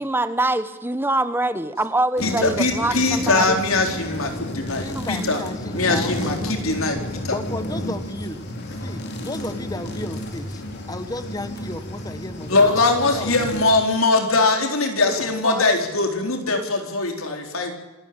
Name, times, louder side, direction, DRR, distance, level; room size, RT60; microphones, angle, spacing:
voice 1, 0.0-3.6 4.9-5.1, right 2 dB, 10° right, 12 dB, 1.1 m, -24 dB
voice 2, 2.2-5.4 5.7-7.4 12.5-17.7, left 3 dB, 75° left, 3 dB, 4.2 m, -21 dB
sound 1, 2.2-13.8, left 1 dB, 55° left, 3.8 m, -32 dB
voice 3, 4.8-6.3 7.3-8.4 8.8-12.7 13.1-13.6 15.4-15.6, left 1 dB, 20° left, 10 dB, 1.3 m, -33 dB
27.0 x 13.0 x 8.9 m, 1.1 s
head